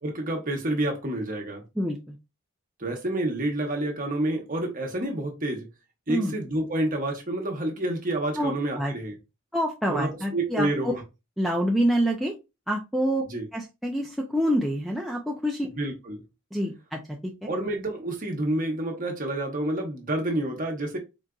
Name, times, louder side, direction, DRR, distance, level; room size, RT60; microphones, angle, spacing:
voice 1, 0.0-1.6 2.8-5.7 6.1-9.2 9.9-11.0 13.3-13.5 15.8-16.2 17.5-21.0, right 1 dB, 40° right, 0.9 m, -28 dB
voice 2, 1.8-2.2 6.1-6.3 8.4-8.5 8.8-8.9 9.5-10.9 11.4-12.3 12.7-13.2 13.5-15.7 16.5-17.3, equal, ahead, 0.3 m, -26 dB
3.9 x 2.4 x 2.3 m
head